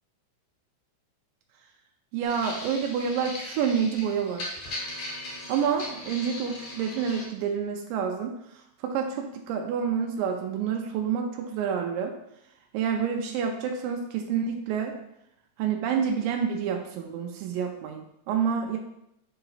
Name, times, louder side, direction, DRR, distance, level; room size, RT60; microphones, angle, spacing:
voice 1, 2.1-4.5 5.5-8.3 8.8-12.1 12.7-15.0 15.6-18.8, right 7 dB, 85° right, 2 dB, 2.0 m, -28 dB
sound 1, 2.2-7.2, left 2 dB, 80° left, 1.2 m, -38 dB
6.9 x 2.9 x 5.6 m, 0.81 s
omnidirectional pair, 4.6 m